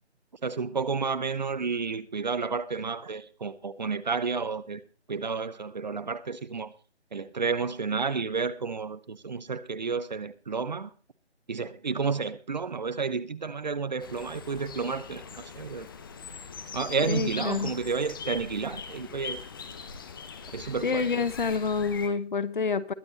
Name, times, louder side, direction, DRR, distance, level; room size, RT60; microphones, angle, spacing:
voice 1, 0.4-4.8 5.1-6.7 7.1-10.9 11.5-15.9 16.7-19.4 20.5-21.3, right 5 dB, 40° right, 0.8 m, -31 dB
sound 1, 14.0-22.1, left 6 dB, 20° left, 1.0 m, -41 dB
voice 2, 17.1-17.8 20.8-22.9, left 5 dB, 45° left, 1.0 m, -28 dB
21.0 x 7.8 x 4.1 m
figure-of-eight pair, 155°, 34 cm